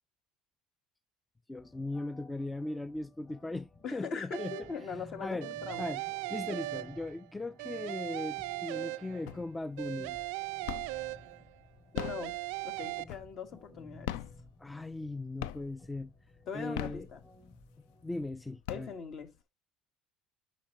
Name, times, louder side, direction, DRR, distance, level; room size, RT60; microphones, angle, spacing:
voice 1, 1.5-4.7 5.2-5.5 5.8-6.0 6.3-10.2 14.6-16.1 16.5-17.1 18.0-18.9, left 2 dB, 10° left, 0.3 m, -38 dB
sound 1, 1.6-18.6, left 1 dB, 35° left, 2.8 m, -56 dB
voice 2, 3.8-5.8 11.9-12.3 12.6-14.2 16.5-17.2 18.7-19.3, left 5 dB, 50° left, 1.4 m, -41 dB
sound 2, 4.3-4.9 5.4-7.3 7.6-9.4 9.8-11.6 11.9-13.0, right 19 dB, 80° right, 0.3 m, -38 dB
sound 3, 9.3-9.8 10.1-11.1 11.8-13.5 14.0-15.1 15.4-15.9 16.5-17.6 18.1-18.2 18.5-19.4, left 12 dB, 80° left, 0.4 m, -40 dB
8.5 x 5.5 x 2.9 m
supercardioid pair, 95°, 0 cm